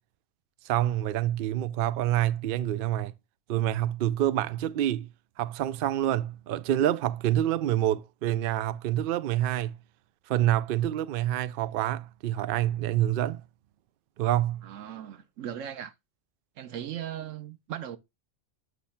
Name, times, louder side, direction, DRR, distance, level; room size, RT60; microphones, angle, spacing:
voice 1, 0.7-3.1 3.5-5.1 5.4-9.7 10.3-13.4 14.2-14.6, right 12 dB, 60° right, 0.6 m, -27 dB
voice 2, 14.6-15.9 16.6-18.0, right 10 dB, 90° right, 1.1 m, -38 dB
8.2 x 3.1 x 5.7 m
omnidirectional pair, 1.3 m